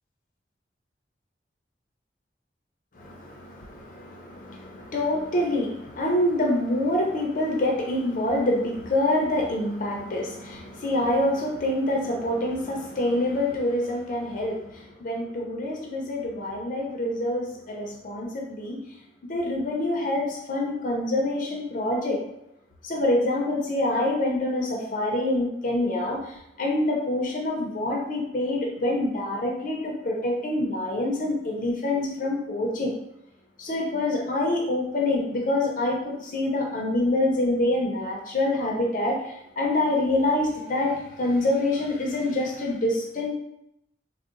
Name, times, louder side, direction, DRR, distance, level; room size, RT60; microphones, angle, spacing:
voice 1, 2.9-18.8 19.3-22.2 22.8-32.9 33.6-43.3, left 1 dB, 45° left, 0 dB, 0.5 m, -26 dB
3.8 x 2.0 x 2.4 m, 0.82 s
head